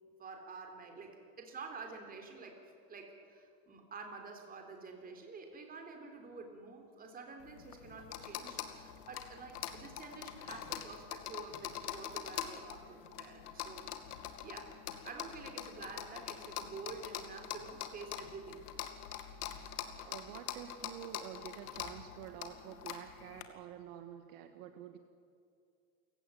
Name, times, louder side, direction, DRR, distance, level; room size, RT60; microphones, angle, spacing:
voice 1, 0.2-13.9 14.4-18.7, right 4 dB, 20° right, 4 dB, 3.7 m, -49 dB
sound 1, 7.4-23.4, left 10 dB, 80° left, 2.3 m, -44 dB
voice 2, 20.0-25.0, right 10 dB, 55° right, 7 dB, 1.7 m, -48 dB
29.0 x 17.0 x 8.6 m, 2.4 s
supercardioid pair, 150°, 46 cm